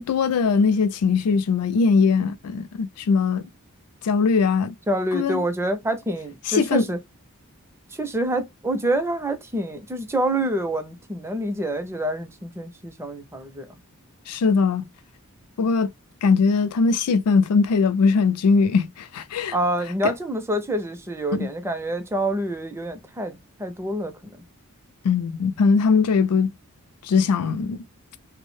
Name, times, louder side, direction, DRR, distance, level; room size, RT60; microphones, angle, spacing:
voice 1, 0.0-3.5 4.0-4.7 5.1-5.4 6.5-6.9 14.3-14.9 15.6-15.9 16.2-19.5 20.0-20.1 21.3-21.5 25.0-26.5 27.0-27.8, left 5 dB, 85° left, 0.4 m, -20 dB
voice 2, 4.9-7.0 7.9-13.8 19.5-24.4, right 1 dB, 10° right, 0.4 m, -27 dB
2.6 x 2.0 x 3.0 m
head